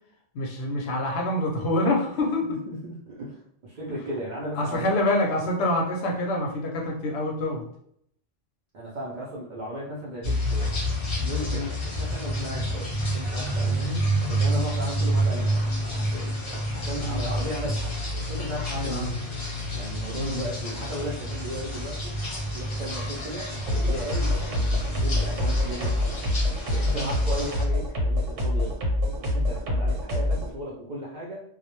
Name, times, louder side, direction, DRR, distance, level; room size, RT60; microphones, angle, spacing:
voice 1, 0.3-2.6 4.6-7.7 11.5-11.8 17.0-17.3 18.7-19.2 20.2-20.4 26.9-27.1, left 1 dB, 65° left, 0 dB, 0.7 m, -26 dB
voice 2, 2.7-4.9 8.7-10.7 11.2-16.3 16.7-19.2 19.7-22.1 22.5-26.2 26.7-28.8 29.2-31.4, equal, 60° right, -5 dB, 0.5 m, -36 dB
sound 1, 10.2-27.6, equal, 30° left, 0.6 m, -29 dB
sound 2, 23.7-30.5, left 1 dB, 85° right, 1.1 m, -25 dB
2.2 x 2.0 x 2.9 m, 0.69 s
omnidirectional pair, 1.3 m